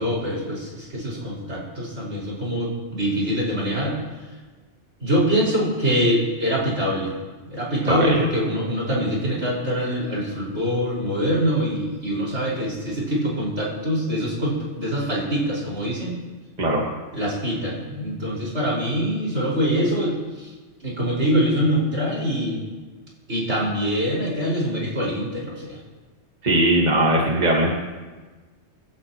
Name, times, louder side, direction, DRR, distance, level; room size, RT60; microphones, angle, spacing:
voice 1, 0.0-4.0 5.0-7.2 7.4-16.2 17.1-20.5 20.8-22.6 23.3-25.8, equal, 75° right, -5 dB, 5.8 m, -24 dB
voice 2, 26.4-27.7, right 1 dB, 35° right, -3 dB, 1.9 m, -19 dB
25.5 x 11.5 x 3.1 m, 1.3 s
omnidirectional pair, 1.2 m